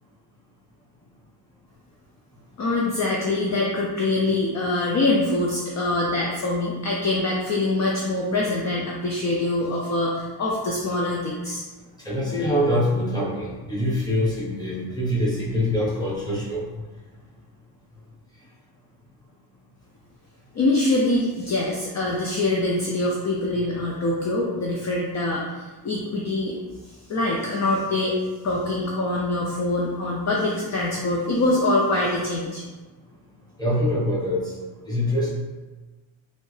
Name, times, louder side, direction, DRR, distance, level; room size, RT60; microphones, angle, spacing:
voice 1, 2.6-11.6 20.5-26.6 27.1-28.2 28.4-32.6, left 2 dB, 40° left, -3 dB, 0.5 m, -24 dB
voice 2, 12.0-16.6 33.6-34.4 34.9-35.3, left 1 dB, 10° left, -7 dB, 1.1 m, -24 dB
3.2 x 2.7 x 3.2 m, 1.2 s
cardioid pair, 115°, 44 cm